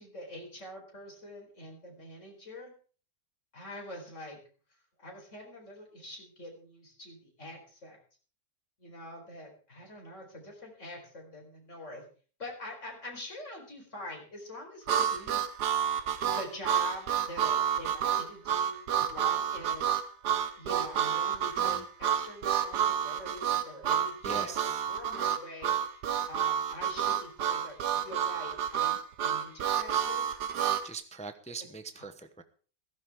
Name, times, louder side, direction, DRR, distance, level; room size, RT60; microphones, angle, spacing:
voice 1, 0.0-2.7 3.5-4.4 5.0-8.0 8.8-12.0 12.4-15.4 16.3-20.0 20.6-25.8 26.3-28.9 29.2-30.3, left 1 dB, 40° left, 1 dB, 4.8 m, -44 dB
Harmonica, 14.9-30.9, right 9 dB, 65° right, 1.5 m, -29 dB
voice 2, 24.2-24.8 30.8-32.4, right 4 dB, 10° left, 9 dB, 0.3 m, -42 dB
16.0 x 14.5 x 3.7 m, 0.40 s
omnidirectional pair, 2.0 m